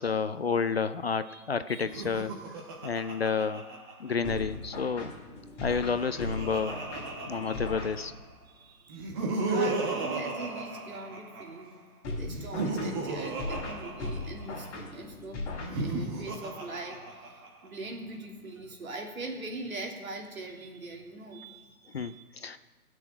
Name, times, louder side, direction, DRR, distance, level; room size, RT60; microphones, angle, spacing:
voice 1, 0.0-2.3 2.8-3.6 4.0-5.1 5.6-6.7 7.3-8.1 21.9-22.6, left 5 dB, 45° left, 12 dB, 0.5 m, -30 dB
Laughter, 1.8-4.6 5.6-8.2 8.9-11.6 12.3-14.7 15.5-17.7, right 3 dB, 15° right, 1.1 m, -35 dB
sound 1, 4.2-8.4 12.0-16.3, left 2 dB, 20° left, 3.5 m, -38 dB
voice 2, 8.5-9.1 9.3-11.8 12.2-22.2, right 2 dB, 65° right, 1 dB, 3.1 m, -41 dB
17.5 x 6.4 x 9.2 m, 1.3 s
figure-of-eight pair, 150°, 45 cm